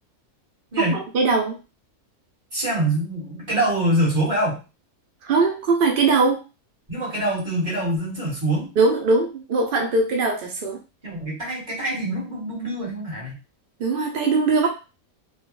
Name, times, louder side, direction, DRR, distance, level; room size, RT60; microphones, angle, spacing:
voice 1, 0.8-1.6 5.2-6.4 8.8-10.8 13.8-14.7, right 3 dB, 75° right, 1 dB, 0.5 m, -21 dB
voice 2, 2.5-4.6 6.9-8.7 11.0-13.3, right 1 dB, 30° right, -5 dB, 1.7 m, -24 dB
3.1 x 2.3 x 3.0 m, 0.31 s
omnidirectional pair, 1.6 m